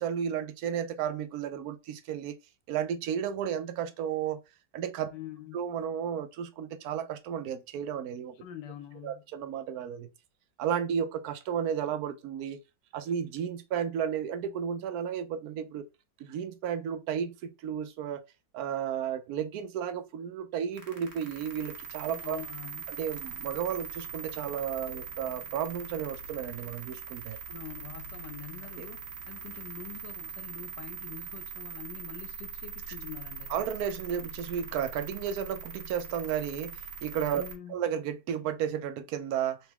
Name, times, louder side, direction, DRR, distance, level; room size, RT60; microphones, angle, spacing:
voice 1, 0.0-2.4 2.7-4.4 4.7-5.1 5.5-8.3 9.0-10.1 10.6-12.6 12.9-15.9 16.2-18.2 18.5-22.4 22.9-27.4 28.8-28.9 33.5-37.4 37.7-39.6, right 8 dB, 70° right, 1.0 m, -33 dB
voice 2, 5.1-5.6 8.3-9.2 22.1-23.0 27.3-33.6 37.3-37.8, left 9 dB, 75° left, 1.2 m, -45 dB
sound 1, 20.7-37.5, right 6 dB, 45° right, 1.0 m, -42 dB
4.0 x 3.0 x 3.4 m
omnidirectional pair, 2.0 m